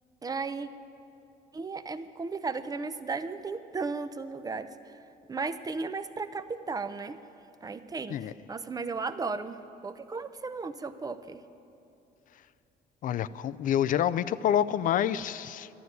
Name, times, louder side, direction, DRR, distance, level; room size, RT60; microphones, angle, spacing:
voice 1, 0.2-0.7 1.5-4.7 5.3-7.2 7.6-11.4, right 4 dB, 20° right, 11 dB, 0.6 m, -35 dB
voice 2, 13.0-15.7, left 10 dB, 55° left, 16 dB, 0.4 m, -27 dB
12.0 x 11.0 x 9.5 m, 2.7 s
cardioid pair, 110°, 17 cm